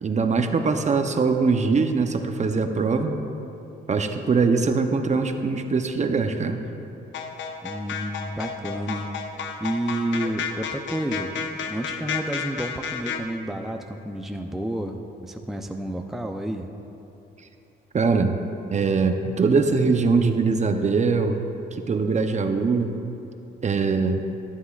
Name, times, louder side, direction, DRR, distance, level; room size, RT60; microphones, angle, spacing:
voice 1, 0.0-3.1 3.9-6.6 17.9-18.4 18.7-21.4 21.7-23.0 23.6-24.2, right 4 dB, 35° right, 6 dB, 0.7 m, -22 dB
sound 1, 7.1-13.2, left 6 dB, 70° left, 0.8 m, -32 dB
voice 2, 7.6-9.1 9.6-11.3 11.6-16.7, right 1 dB, ahead, 4 dB, 0.5 m, -30 dB
13.0 x 11.5 x 2.4 m, 2.9 s
cardioid pair, 80°, 20 cm